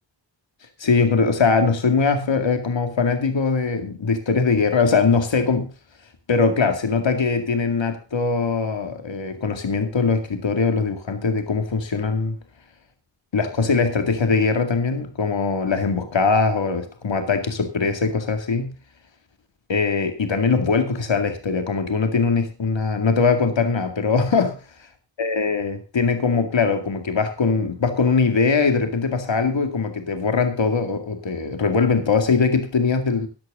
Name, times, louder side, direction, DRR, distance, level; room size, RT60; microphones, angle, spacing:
voice 1, 0.8-5.7 6.3-12.4 13.3-18.7 19.7-24.6 25.2-33.3, left 4 dB, 80° left, 2.3 m, -21 dB
14.5 x 11.0 x 3.7 m
wide cardioid pair, 55°, 44 cm